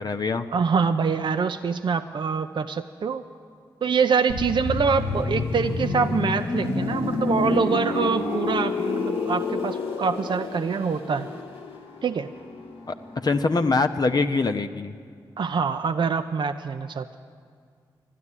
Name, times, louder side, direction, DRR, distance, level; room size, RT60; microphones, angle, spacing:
voice 1, 0.0-0.5 12.9-13.0 13.2-14.9, left 3 dB, 45° left, 6 dB, 0.6 m, -23 dB
voice 2, 0.5-3.2 3.8-11.3 12.0-12.3 15.4-17.2, right 5 dB, 60° right, 8 dB, 0.5 m, -25 dB
sound 1, 4.3-14.0 14.2-14.4, left 3 dB, 90° left, 1.0 m, -29 dB
12.5 x 11.0 x 9.8 m, 2.1 s
supercardioid pair, 40°, 9 cm